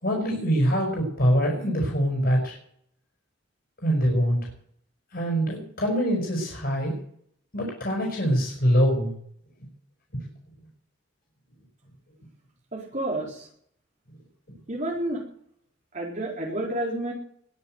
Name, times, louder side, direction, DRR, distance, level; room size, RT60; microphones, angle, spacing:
voice 1, 0.0-2.5 3.8-4.4 5.1-6.9 7.5-9.1 10.1-10.2, equal, 55° left, -1 dB, 5.5 m, -24 dB
voice 2, 12.7-13.5 14.7-15.2 15.9-17.1, right 1 dB, 40° right, -3 dB, 4.1 m, -30 dB
20.5 x 7.5 x 7.9 m, 0.66 s
head